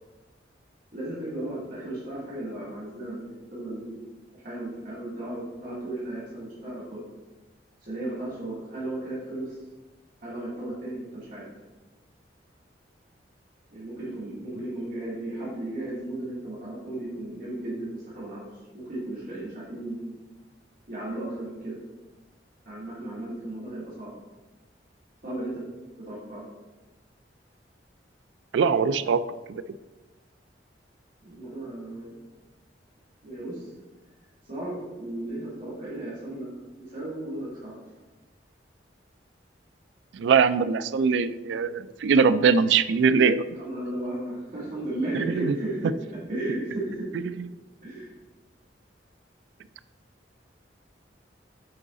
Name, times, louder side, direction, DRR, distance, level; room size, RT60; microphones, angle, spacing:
voice 1, 0.9-4.0 4.4-7.0 7.8-9.6 10.2-11.5 13.7-18.5 18.7-20.2 20.9-21.8 22.7-24.1 25.2-25.6 26.0-26.5 31.2-32.2 33.2-33.7 34.5-36.5 36.8-37.8 43.6-45.9 46.3-47.4 47.8-48.1, right 1 dB, 50° right, -7 dB, 2.4 m, -35 dB
voice 2, 28.5-29.2 29.5-29.6 40.1-43.5 45.1-45.5, right 5 dB, 80° right, 15 dB, 0.3 m, -22 dB
7.8 x 4.9 x 3.7 m, 1.2 s
head